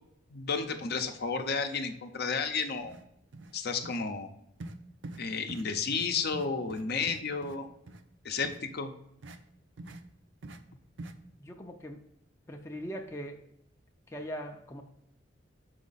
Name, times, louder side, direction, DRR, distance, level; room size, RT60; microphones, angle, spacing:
voice 1, 0.3-3.0 3.5-4.3 5.2-7.7 8.2-8.9, left 5 dB, 55° left, 0.7 m, -32 dB
sound 1, 2.4-2.5 2.8-3.0 3.3-3.5 3.8-4.0 4.6-4.8 5.0-5.2 5.5-5.7 5.9-6.1 6.3-7.6 7.9-8.0 8.4-8.6 9.2-9.4 9.8-10.0 10.4-10.6 11.0-11.1, right 2 dB, 70° right, 0.6 m, -44 dB
voice 2, 11.3-12.0 12.5-13.4 14.1-14.8, equal, 15° left, 0.5 m, -40 dB
6.3 x 4.9 x 4.0 m
head